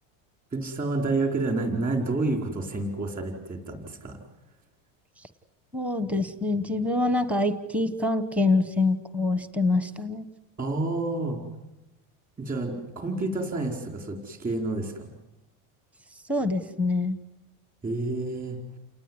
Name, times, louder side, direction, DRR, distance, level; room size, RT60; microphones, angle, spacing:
voice 1, 0.5-4.2 10.6-11.4 12.4-15.1 17.8-18.6, right 2 dB, 20° right, 3 dB, 4.8 m, -29 dB
voice 2, 5.7-10.3 16.3-17.2, left 2 dB, 5° right, 11 dB, 1.1 m, -25 dB
29.5 x 19.5 x 9.7 m, 0.92 s
cardioid pair, 175°, 40 cm